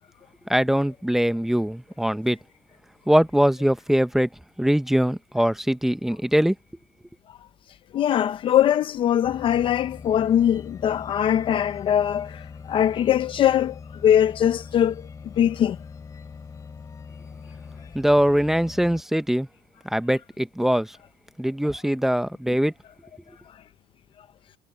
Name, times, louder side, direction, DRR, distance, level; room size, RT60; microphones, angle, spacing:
voice 1, 0.5-2.4 3.1-4.3 4.6-6.5 17.9-19.5 19.8-21.0 21.4-22.7, equal, ahead, 0.7 m, -22 dB
voice 2, 7.9-13.8 14.0-15.0 15.4-15.8, left 10 dB, 35° left, 0.5 m, -21 dB
sound 1, 9.2-19.0, left 5 dB, 20° left, 4.6 m, -42 dB
cardioid pair, 175°, 14 cm